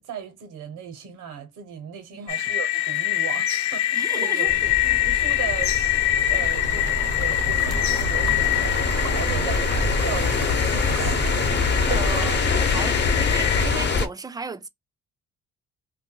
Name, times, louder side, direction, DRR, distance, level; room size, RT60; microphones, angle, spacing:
voice 1, 0.0-11.3, right 8 dB, 90° right, 1.1 m, -37 dB
sound 1, 2.3-13.6, left 13 dB, 65° left, 0.4 m, -25 dB
voice 2, 3.9-4.5 11.9-14.7, right 4 dB, 15° right, 0.4 m, -34 dB
sound 2, 4.5-14.1, left 4 dB, 35° left, 0.8 m, -25 dB
sound 3, 6.4-12.4, right 4 dB, 55° right, 0.7 m, -31 dB
2.6 x 2.2 x 3.8 m
cardioid pair, 90°, 30 cm